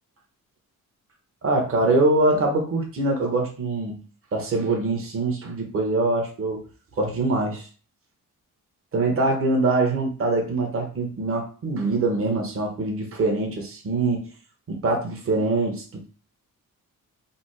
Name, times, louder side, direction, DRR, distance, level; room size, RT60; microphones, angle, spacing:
voice 1, 1.4-4.0 4.3-6.6 7.0-7.7 8.9-14.3 14.7-16.1, right 2 dB, 40° right, 1 dB, 1.2 m, -23 dB
5.2 x 2.1 x 4.8 m, 0.37 s
wide cardioid pair, 160°, 33 cm